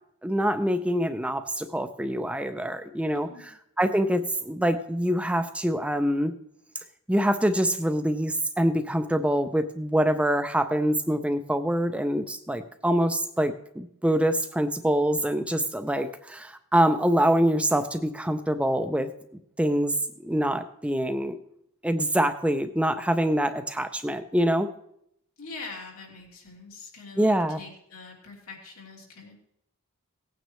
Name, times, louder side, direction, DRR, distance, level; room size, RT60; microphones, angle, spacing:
voice 1, 0.2-3.3 3.8-6.3 7.1-19.1 19.6-20.0 20.2-21.4 21.8-24.7 27.2-27.6, right 1 dB, 5° right, 9 dB, 0.4 m, -25 dB
voice 2, 3.1-3.5 25.4-29.3, left 3 dB, 80° left, -2 dB, 3.0 m, -43 dB
18.0 x 9.2 x 3.1 m, 0.74 s
head